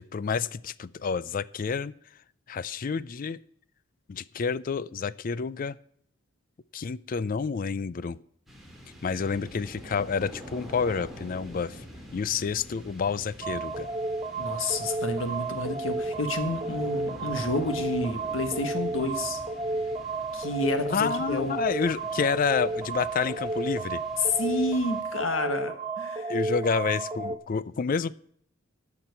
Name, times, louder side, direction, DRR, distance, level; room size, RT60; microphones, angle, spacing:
voice 1, 0.0-1.9 2.5-3.4 4.1-5.8 6.7-8.2 9.0-11.8 12.1-13.9 20.9-24.0 26.3-28.1, left 5 dB, 40° left, 18 dB, 0.4 m, -29 dB
sound 1, 8.5-25.4, equal, ahead, 2.4 m, -46 dB
sound 2, 13.4-27.4, right 3 dB, 20° right, 1.0 m, -32 dB
voice 2, 14.4-19.4 20.3-21.5 24.2-26.3, left 2 dB, 75° left, 8 dB, 1.5 m, -30 dB
13.0 x 5.9 x 8.1 m, 0.65 s
head